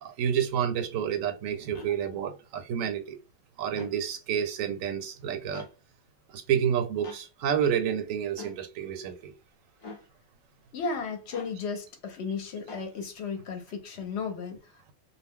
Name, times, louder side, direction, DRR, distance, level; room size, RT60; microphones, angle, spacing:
voice 1, 0.0-3.2 3.6-5.7 6.3-9.3, right 8 dB, 90° right, 1.0 m, -29 dB
sound 1, 1.7-1.9 3.7-4.0 5.5-5.7 7.0-7.2 8.4-8.6 9.8-10.1 11.3-11.6 12.7-12.9, left 3 dB, 40° left, 0.4 m, -43 dB
voice 2, 10.7-14.8, left 5 dB, 65° left, 0.8 m, -34 dB
2.2 x 2.0 x 3.5 m
omnidirectional pair, 1.3 m